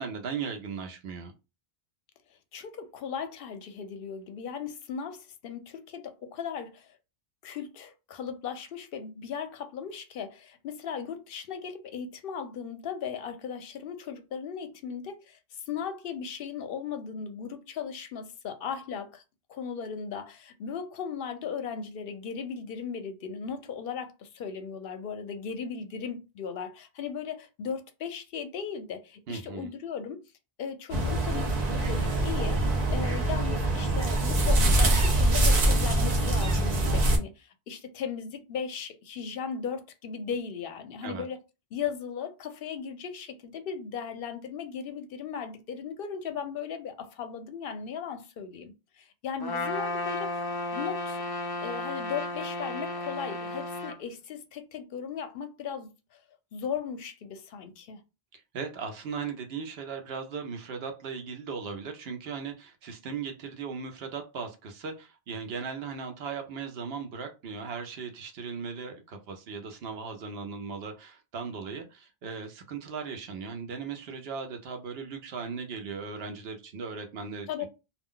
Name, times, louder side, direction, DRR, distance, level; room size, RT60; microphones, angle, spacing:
voice 1, 0.0-1.3 29.3-29.7 41.0-41.3 58.3-77.7, right 5 dB, 80° right, 0.8 m, -37 dB
voice 2, 2.5-6.9 7.4-19.2 19.5-30.2 30.6-32.6 32.9-41.4 41.7-50.4 50.7-51.2 51.6-56.2 56.5-58.0 77.5-77.7, left 7 dB, 70° left, 0.7 m, -37 dB
sound 1, 30.9-37.2, right 1 dB, 45° right, 0.7 m, -24 dB
Trumpet, 49.4-54.0, left 2 dB, 40° left, 0.3 m, -33 dB
2.3 x 2.2 x 3.7 m
omnidirectional pair, 1.0 m